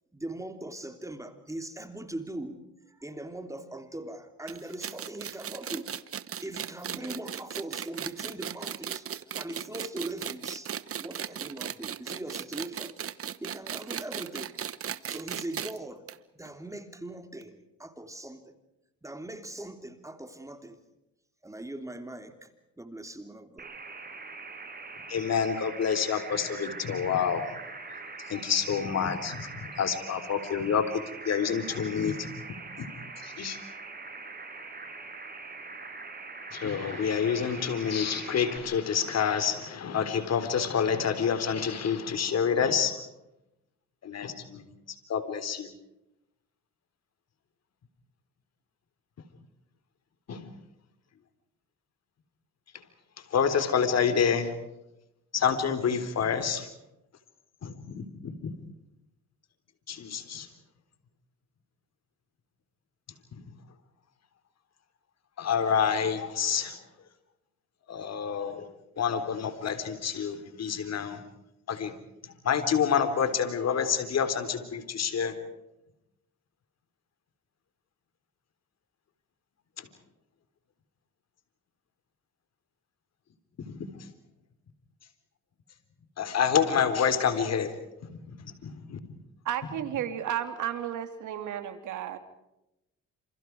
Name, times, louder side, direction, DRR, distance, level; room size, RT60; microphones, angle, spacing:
voice 1, 0.1-5.9 6.4-9.1 9.4-10.7 11.0-12.9 13.4-14.5 15.1-16.0 16.3-18.5 19.0-20.8 21.4-22.5 22.8-23.7, right 1 dB, 10° right, 7 dB, 3.3 m, -40 dB
sound 1, 4.5-15.8 16.1-16.2 16.4-16.5 17.4-17.5, right 8 dB, 50° right, 1.2 m, -37 dB
sound 2, 23.6-38.6, right 4 dB, 30° right, 6.3 m, -43 dB
voice 2, 25.1-27.4 28.3-32.4 32.8-32.9 33.2-33.6 36.5-43.0 44.0-44.7 45.1-45.7 50.3-50.5 53.3-54.5 55.3-56.7 57.6-58.5 59.9-60.5 63.3-63.4 65.4-66.8 67.9-68.7 69.0-71.2 71.7-71.9 72.2-75.4 79.8-79.9 83.6-83.9 86.2-87.7 88.3-88.4 88.6-89.0 89.6-90.0, left 7 dB, 60° left, 10 dB, 3.8 m, -28 dB
voice 3, 89.4-92.2, right 10 dB, 80° right, 8 dB, 3.2 m, -33 dB
28.0 x 28.0 x 4.7 m, 0.89 s
cardioid pair, 90°, 30 cm